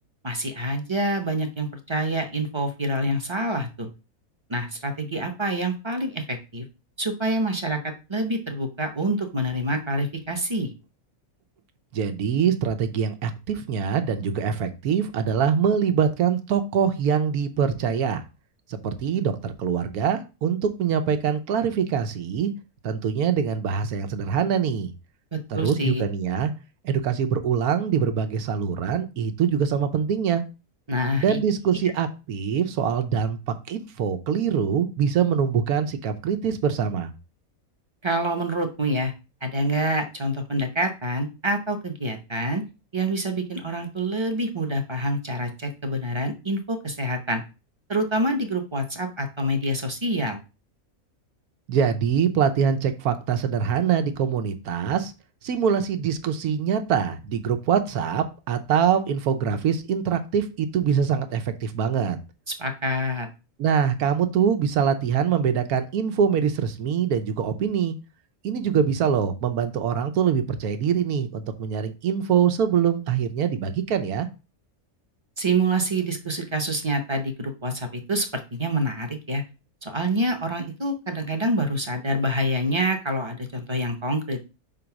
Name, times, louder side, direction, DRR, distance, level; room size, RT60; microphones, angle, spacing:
voice 1, 0.2-3.9 4.5-6.6 7.0-10.7 25.3-26.0 30.9-31.4 38.0-39.1 39.4-42.6 42.9-47.4 47.9-50.4 62.5-63.3 75.4-79.4 79.8-84.5, right 1 dB, 25° right, 5 dB, 0.7 m, -26 dB
voice 2, 11.9-18.2 18.7-22.5 22.8-24.9 25.5-26.5 26.8-30.4 31.2-37.1 51.7-55.1 55.4-62.2 63.6-68.0 68.4-74.3, right 7 dB, 90° right, 8 dB, 1.3 m, -24 dB
5.2 x 3.8 x 5.9 m, 0.30 s
omnidirectional pair, 1.5 m